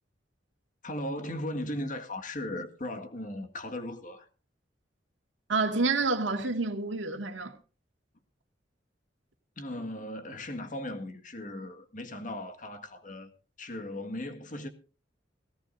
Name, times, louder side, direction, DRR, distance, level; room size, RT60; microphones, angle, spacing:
voice 1, 0.8-4.3 9.6-13.3 13.6-14.7, left 1 dB, 45° left, 1.8 m, -37 dB
voice 2, 5.5-7.6, right 3 dB, 85° right, 2.0 m, -28 dB
18.5 x 16.5 x 2.6 m
head